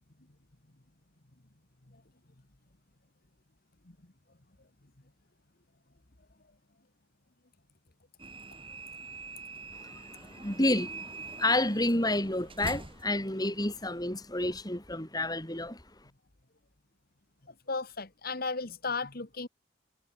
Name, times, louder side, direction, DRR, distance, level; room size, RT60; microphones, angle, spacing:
sound 1, 8.2-14.0, right 3 dB, 25° right, 6.4 m, -44 dB
voice 1, 9.7-15.8, left 1 dB, 20° left, 5.6 m, -30 dB
voice 2, 17.7-19.5, left 4 dB, 50° left, 1.8 m, -34 dB
head